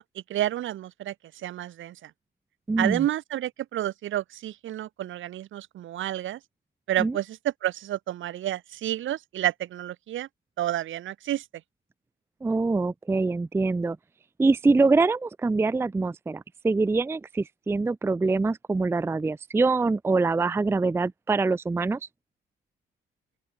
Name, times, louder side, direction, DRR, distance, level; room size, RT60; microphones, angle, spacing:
voice 1, 0.0-2.1 2.8-6.4 6.9-10.3 10.6-11.4, right 13 dB, 75° right, 2.8 m, -30 dB
voice 2, 2.7-3.0 7.0-7.2 12.4-14.0 14.4-22.0, right 3 dB, 10° right, 0.4 m, -24 dB
open air
cardioid pair, 90°, 20 cm